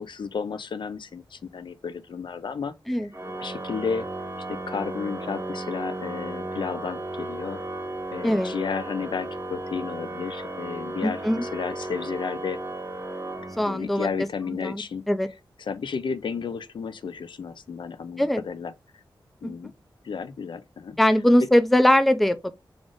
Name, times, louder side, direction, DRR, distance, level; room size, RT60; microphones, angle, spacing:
voice 1, 0.0-3.0 3.4-4.1 4.5-7.6 8.1-12.6 13.7-15.0 15.6-18.7 19.4-19.7 20.0-21.0, left 5 dB, 70° left, 0.4 m, -32 dB
Organ, 3.1-14.1, right 1 dB, 30° right, 0.9 m, -35 dB
voice 2, 8.2-8.5 11.0-11.4 13.6-14.1 14.6-14.8 15.1-15.3 18.2-18.4 19.4-19.5 21.0-22.5, left 1 dB, ahead, 0.3 m, -21 dB
3.5 x 2.5 x 3.6 m
wide cardioid pair, 115°, 8 cm